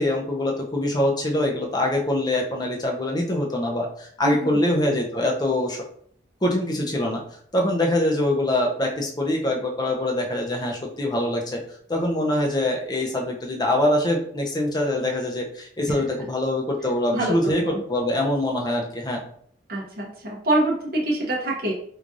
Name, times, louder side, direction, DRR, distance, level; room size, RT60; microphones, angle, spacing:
voice 1, 0.0-5.8 6.4-7.2 7.5-11.6 11.9-19.2, left 1 dB, 20° left, 0 dB, 0.6 m, -24 dB
voice 2, 4.2-4.6 17.1-17.8 19.7-21.7, right 1 dB, 50° right, -3 dB, 0.7 m, -25 dB
4.6 x 2.5 x 2.5 m, 0.62 s
head